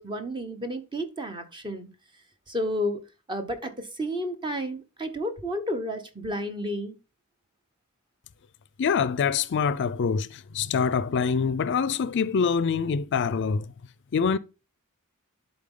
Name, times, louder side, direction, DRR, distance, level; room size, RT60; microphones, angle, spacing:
voice 1, 0.0-1.9 2.5-3.0 3.3-7.0, equal, 20° right, 1.0 m, -31 dB
voice 2, 8.8-13.7 14.1-14.4, left 6 dB, 55° left, 0.4 m, -25 dB
11.0 x 4.0 x 3.7 m
head